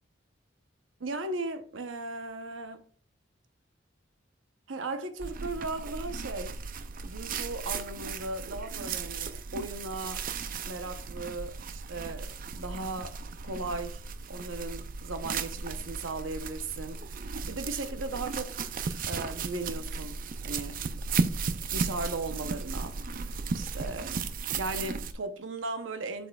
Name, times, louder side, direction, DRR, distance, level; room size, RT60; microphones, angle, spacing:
voice 1, 1.0-2.8 4.7-6.6 7.0-10.2 10.6-13.2 13.4-14.0 14.3-18.6 19.0-20.2 20.4-20.8 21.7-23.0 23.5-24.3 24.5-26.3, right 2 dB, 90° right, 0.8 m, -37 dB
sound 1, 5.2-25.1, right 4 dB, 45° right, 0.5 m, -35 dB
7.8 x 6.2 x 2.3 m
head